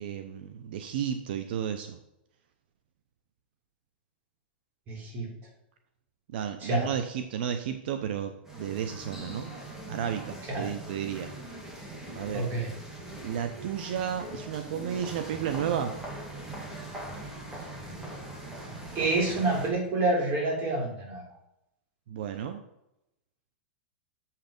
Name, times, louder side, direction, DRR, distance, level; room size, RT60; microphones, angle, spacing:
voice 1, 0.0-2.0 6.3-9.5 9.9-11.3 12.1-12.5 13.2-15.9 22.1-22.6, right 9 dB, 65° right, 8 dB, 0.7 m, -33 dB
voice 2, 4.9-5.3 6.6-6.9 10.5-10.7 12.3-12.7 19.0-21.2, right 2 dB, 30° right, -2 dB, 3.6 m, -28 dB
sound 1, 8.5-19.7, right 1 dB, 10° right, 1.8 m, -41 dB
7.2 x 5.7 x 5.2 m, 0.86 s
supercardioid pair, 145°, 6 cm